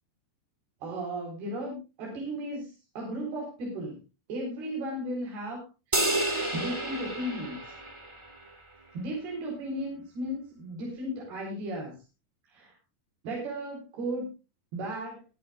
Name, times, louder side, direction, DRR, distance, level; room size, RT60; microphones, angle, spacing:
voice 1, 0.8-4.0 4.3-5.7 6.1-7.7 8.9-12.0 12.5-12.8 13.2-14.3 14.7-15.2, right 1 dB, 70° right, -1 dB, 6.1 m, -35 dB
sound 1, 5.9-8.5, right 1 dB, 15° right, 0.9 m, -30 dB
22.5 x 11.5 x 2.5 m, 0.30 s
omnidirectional pair, 4.7 m